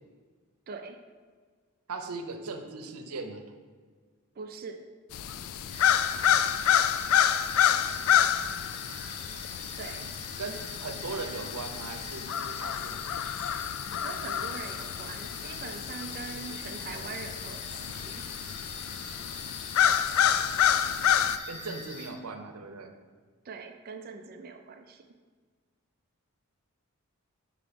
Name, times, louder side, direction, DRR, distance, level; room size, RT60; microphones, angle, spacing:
voice 1, 0.7-1.0 4.4-4.9 9.8-10.1 14.0-18.2 23.4-25.1, right 5 dB, 45° right, 6 dB, 0.4 m, -42 dB
voice 2, 1.9-3.4 8.7-9.0 10.4-13.0 21.5-22.9, right 3 dB, 85° right, 5 dB, 0.7 m, -39 dB
sound 1, 5.1-21.4, left 9 dB, 70° left, 0.3 m, -28 dB
sound 2, 5.7-22.1, left 3 dB, 30° left, 0.8 m, -44 dB
5.9 x 4.9 x 5.1 m, 1.5 s
head